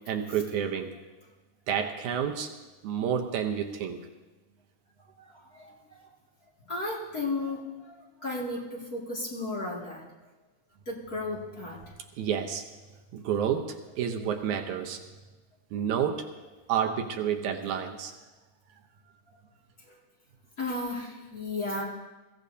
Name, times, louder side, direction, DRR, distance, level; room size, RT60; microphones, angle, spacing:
voice 1, 0.1-1.0 1.7-2.5 2.8-4.1 12.2-12.6 13.1-15.0 15.7-16.3 16.7-18.1, right 8 dB, 75° right, 4 dB, 2.3 m, -29 dB
voice 2, 5.3-5.7 6.7-7.9 8.2-10.0 10.9-11.8 20.6-21.8, left 2 dB, 30° left, -5 dB, 2.5 m, -34 dB
22.5 x 15.0 x 2.8 m, 1.2 s
omnidirectional pair, 3.4 m